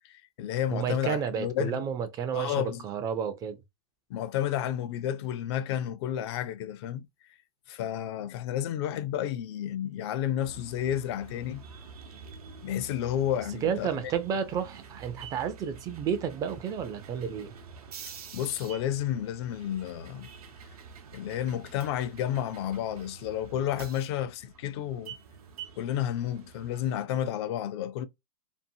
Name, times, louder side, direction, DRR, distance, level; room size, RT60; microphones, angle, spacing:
voice 1, 0.0-1.8 2.3-2.8 4.1-7.1 7.7-11.6 12.6-14.0 18.3-20.3 21.1-25.1 25.8-28.1, left 10 dB, 45° left, 0.4 m, -31 dB
voice 2, 0.7-3.6 13.6-17.5, right 7 dB, 20° right, 0.4 m, -31 dB
sound 1, 10.4-27.0, right 5 dB, 85° right, 0.8 m, -47 dB
2.7 x 2.5 x 2.6 m
hypercardioid pair, 145°, 19 cm